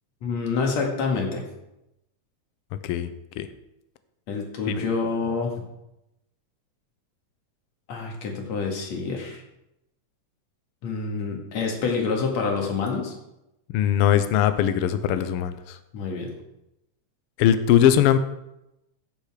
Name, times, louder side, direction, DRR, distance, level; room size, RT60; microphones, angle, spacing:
voice 1, 0.2-1.4 4.3-5.6 7.9-9.4 10.8-13.1 15.9-16.3, left 4 dB, 65° left, 1 dB, 3.2 m, -27 dB
voice 2, 13.7-15.8 17.4-18.2, left 10 dB, 90° left, 11 dB, 1.2 m, -20 dB
15.5 x 7.0 x 5.0 m, 0.88 s
omnidirectional pair, 3.5 m